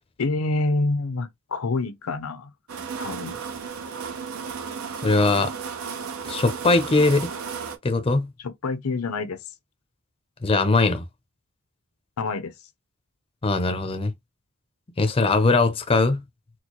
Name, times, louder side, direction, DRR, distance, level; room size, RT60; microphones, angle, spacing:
voice 1, 0.2-2.5 3.0-3.4 8.4-9.4 12.2-12.5, left 3 dB, 90° left, 0.6 m, -27 dB
sound 1, 2.7-7.8, right 6 dB, 75° right, 0.6 m, -34 dB
voice 2, 5.0-5.5 6.2-7.3 7.8-8.3 10.4-11.0 13.4-14.1 15.0-16.2, left 3 dB, 25° left, 0.5 m, -20 dB
4.3 x 2.1 x 2.9 m
head